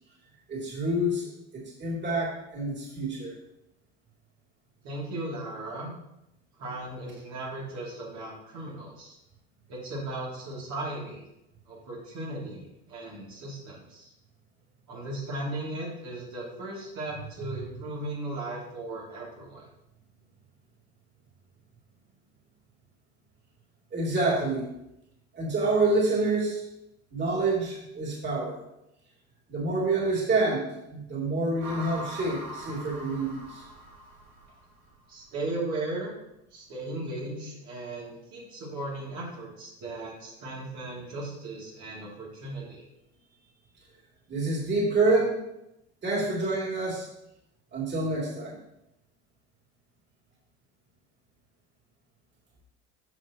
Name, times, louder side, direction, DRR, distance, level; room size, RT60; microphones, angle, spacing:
voice 1, 0.5-3.3 23.9-24.6 25.3-26.6 27.1-28.6 29.5-33.6 44.3-45.3 46.0-47.1 47.7-48.6, right 2 dB, 35° right, -4 dB, 3.3 m, -27 dB
voice 2, 4.8-5.9 6.6-9.2 9.7-11.2 11.7-14.1 14.9-19.7 35.1-36.2 36.5-42.8, right 2 dB, 60° right, -5 dB, 3.2 m, -37 dB
sound 1, 31.6-34.9, right 1 dB, 85° right, 3.3 m, -41 dB
10.5 x 6.3 x 3.1 m, 0.86 s
hypercardioid pair, 85°, 32 cm